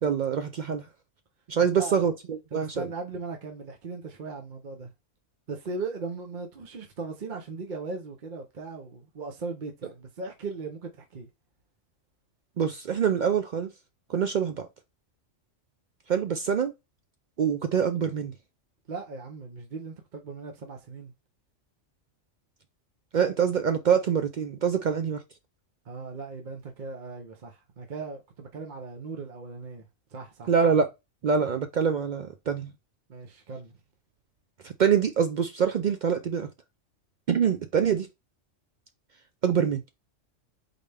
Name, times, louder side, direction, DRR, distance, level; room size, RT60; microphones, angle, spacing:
voice 1, 0.0-0.9 1.5-2.8 12.6-13.7 14.1-14.7 16.1-16.7 17.4-18.3 23.1-25.2 30.5-30.9 31.2-32.7 34.6-36.5 37.3-38.1 39.4-39.8, right 7 dB, 65° right, 0.4 m, -25 dB
voice 2, 1.6-2.1 2.5-4.9 5.5-11.3 18.9-21.1 25.8-30.5 33.1-33.7, right 4 dB, 45° right, 0.8 m, -38 dB
4.1 x 3.3 x 3.3 m
omnidirectional pair, 1.3 m